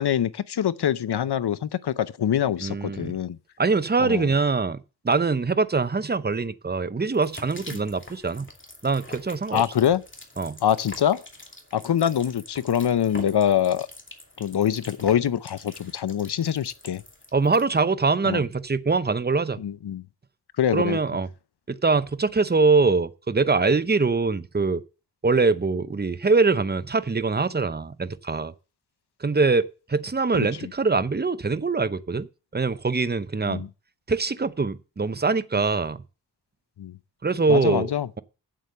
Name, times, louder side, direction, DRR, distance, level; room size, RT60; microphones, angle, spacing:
voice 1, 0.0-3.4 4.0-4.3 7.7-7.9 9.5-10.0 10.6-11.3 11.7-13.9 14.4-17.0 18.2-18.4 19.6-20.0 20.6-21.0 30.3-30.7 33.5-33.7 36.8-37.0 37.5-38.1, left 9 dB, 85° left, 0.6 m, -24 dB
voice 2, 2.6-3.2 3.6-4.8 5.0-8.4 8.8-9.6 10.4-10.6 17.3-19.6 20.7-21.3 21.7-24.8 25.2-28.5 29.2-32.3 32.5-33.6 34.1-36.0 37.2-37.9, right 4 dB, 25° right, 0.7 m, -23 dB
sound 1, 7.1-17.6, left 2 dB, 30° left, 2.5 m, -45 dB
8.3 x 7.7 x 6.7 m
wide cardioid pair, 55°, 39 cm